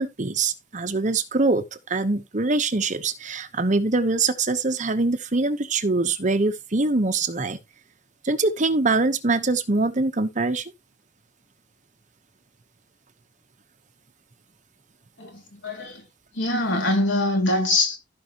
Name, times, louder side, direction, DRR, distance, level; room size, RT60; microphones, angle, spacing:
voice 1, 0.0-7.6 8.2-10.7, right 3 dB, 40° right, 0.9 m, -23 dB
voice 2, 15.2-16.1 16.3-18.0, left 2 dB, 85° left, 3.5 m, -23 dB
15.0 x 5.4 x 2.9 m
head